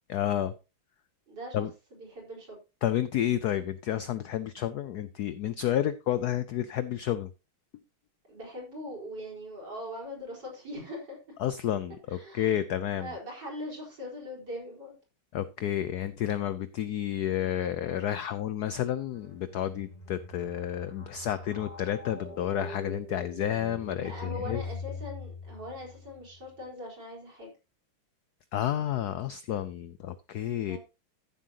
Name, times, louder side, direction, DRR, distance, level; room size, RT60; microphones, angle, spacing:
voice 1, 0.1-0.5 1.5-1.7 2.8-7.3 11.4-13.1 15.3-24.6 28.5-30.8, left 11 dB, 80° left, 14 dB, 0.8 m, -30 dB
voice 2, 1.3-1.6 1.9-2.6 8.3-11.4 12.1-12.6 13.0-14.9 23.8-27.5 30.7-30.8, left 1 dB, 50° right, -2 dB, 5.2 m, -41 dB
sound 1, 19.1-26.4, left 2 dB, 20° left, 2.1 m, -43 dB
14.0 x 7.6 x 2.8 m, 0.28 s
omnidirectional pair, 2.4 m